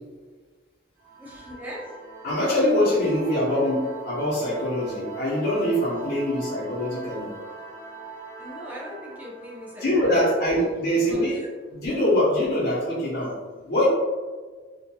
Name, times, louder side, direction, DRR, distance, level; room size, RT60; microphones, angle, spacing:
sound 1, 1.0-11.3, right 4 dB, 50° right, 0.7 m, -41 dB
voice 1, 1.2-2.0 8.4-10.5 10.9-11.3, equal, 10° right, -5 dB, 0.6 m, -40 dB
voice 2, 2.2-7.3 9.8-11.4 11.7-13.4 13.6-13.9, left 1 dB, 60° left, -7 dB, 0.8 m, -23 dB
3.0 x 2.2 x 2.2 m, 1.4 s
head